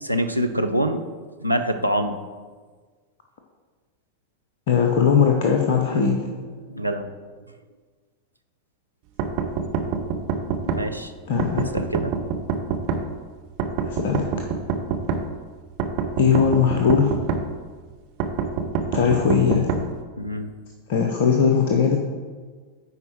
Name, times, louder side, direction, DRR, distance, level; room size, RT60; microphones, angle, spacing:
voice 1, 0.0-1.0 1.4-2.1 5.9-6.1 6.7-7.1 10.6-11.1 11.5-12.1 20.2-20.5, equal, 90° right, 5 dB, 0.5 m, -25 dB
voice 2, 4.7-6.2 11.3-11.7 13.9-14.3 16.2-17.1 18.9-19.7 20.9-22.0, left 6 dB, 55° left, 1 dB, 0.7 m, -19 dB
sound 1, 9.2-10.8 11.4-13.0 13.6-15.2 15.8-17.4 18.2-19.8, right 6 dB, 45° right, 0.8 m, -25 dB
9.6 x 4.5 x 4.5 m, 1.5 s
figure-of-eight pair, 90°, 0 cm